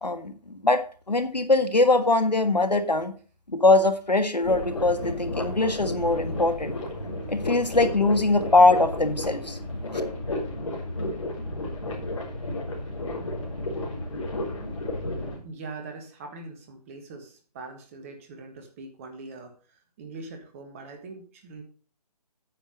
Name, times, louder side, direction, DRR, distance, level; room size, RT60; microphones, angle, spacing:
voice 1, 0.0-3.1 3.5-6.7 7.3-9.6 9.9-10.0, left 2 dB, 85° left, 9 dB, 1.6 m, -22 dB
sound 1, 4.4-15.4, left 1 dB, 50° left, 3.7 m, -32 dB
voice 2, 15.4-21.6, right 3 dB, 20° right, 4 dB, 1.5 m, -42 dB
9.2 x 5.8 x 6.4 m, 0.40 s
figure-of-eight pair, 150°, 21 cm